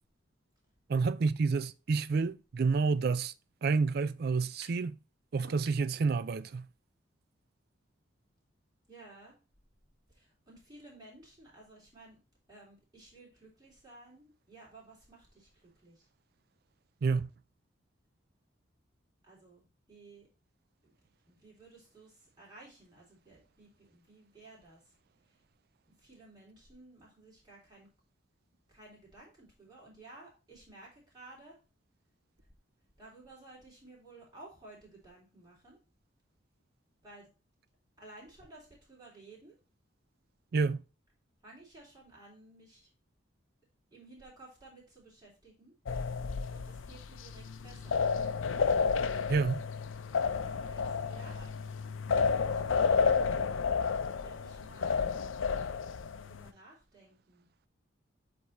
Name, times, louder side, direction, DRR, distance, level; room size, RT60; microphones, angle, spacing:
voice 1, 0.9-3.3 3.6-5.0 5.3-6.7 17.0-17.3 40.5-40.8 49.3-49.6, right 4 dB, 50° right, 0.4 m, -29 dB
sound 1, 4.6-4.9 5.4-5.9, right 2 dB, 70° right, 1.6 m, -52 dB
voice 2, 8.9-9.4 10.1-12.2 12.5-16.0 19.2-20.3 21.3-24.9 26.0-27.9 28.7-31.6 33.0-35.8 37.0-37.3 38.0-39.6 41.4-42.9 43.9-45.7 46.5-48.0 50.4-51.6 52.1-53.1 54.2-55.2 56.3-57.5, right 2 dB, 20° right, 3.1 m, -55 dB
sound 2, 45.9-56.5, left 5 dB, 80° left, 0.5 m, -31 dB
8.1 x 3.6 x 4.1 m
head